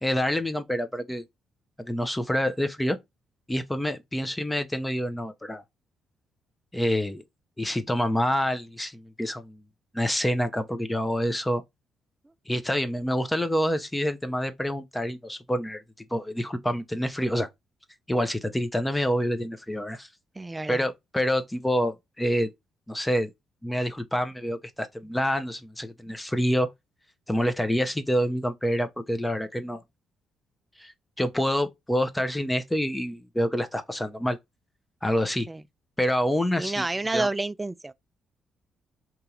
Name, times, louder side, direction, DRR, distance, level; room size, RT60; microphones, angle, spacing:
voice 1, 0.0-1.2 1.8-3.0 3.5-5.6 6.7-7.2 7.6-9.6 9.9-11.6 12.5-17.5 18.1-20.1 20.7-22.5 22.9-23.3 23.6-26.7 27.3-29.8 30.8-30.9 31.2-34.4 35.0-35.5 36.0-36.8 37.1-37.3, equal, 10° left, 0.7 m, -27 dB
voice 2, 20.4-20.9 35.5-35.6 36.6-37.9, right 2 dB, 20° right, 0.3 m, -29 dB
2.9 x 2.7 x 3.7 m
hypercardioid pair, 50°, 0 cm